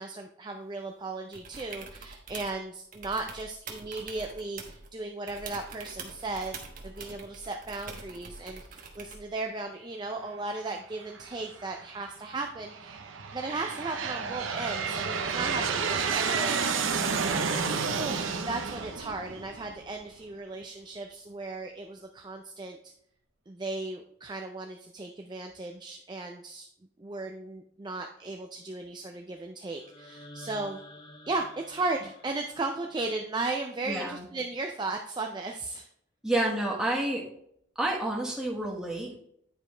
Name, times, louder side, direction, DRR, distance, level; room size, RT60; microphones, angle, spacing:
voice 1, 0.0-13.0 13.3-22.8 23.5-26.7 27.0-30.8 31.3-35.9, right 3 dB, 20° right, 3 dB, 0.4 m, -36 dB
sound 1, 1.3-2.6 2.9-4.9 5.3-9.3 11.2-11.3, right 4 dB, 45° right, 1.1 m, -45 dB
Aircraft, 11.2-11.7 12.4-20.0, right 5 dB, 80° right, 0.8 m, -30 dB
sound 2, 29.8-33.8, left 1 dB, 20° left, 0.8 m, -50 dB
voice 2, 33.9-34.2 36.2-37.2 37.8-39.2, right 1 dB, 5° right, -3 dB, 1.4 m, -29 dB
9.5 x 5.1 x 3.3 m, 0.71 s
head